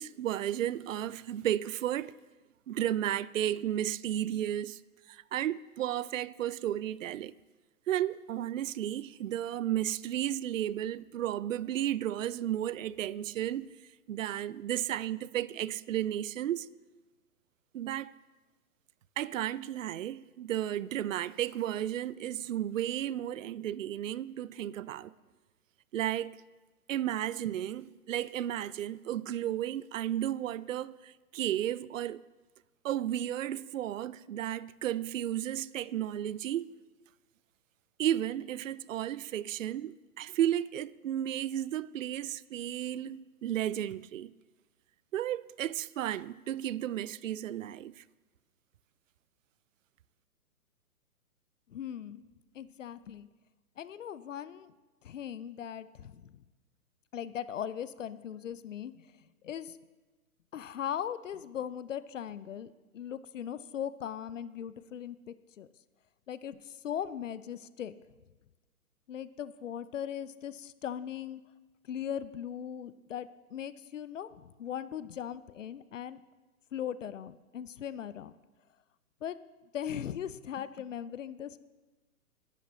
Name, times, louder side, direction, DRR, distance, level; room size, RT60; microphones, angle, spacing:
voice 1, 0.0-2.1 2.7-4.8 5.1-7.3 7.9-13.7 14.1-16.7 17.7-18.1 19.2-25.1 25.9-26.3 26.9-32.2 32.8-36.7 38.0-44.3 45.1-48.0, right 12 dB, 60° right, 0.5 m, -33 dB
voice 2, 51.7-52.3 52.5-53.3 53.8-54.7 55.0-56.4 57.1-58.9 59.4-59.8 60.5-65.7 66.3-67.9 69.1-71.4 71.9-76.2 76.7-78.3 79.2-79.4 79.7-81.6, left 9 dB, 55° left, 0.7 m, -39 dB
20.5 x 10.5 x 3.2 m
figure-of-eight pair, 130°, 45 cm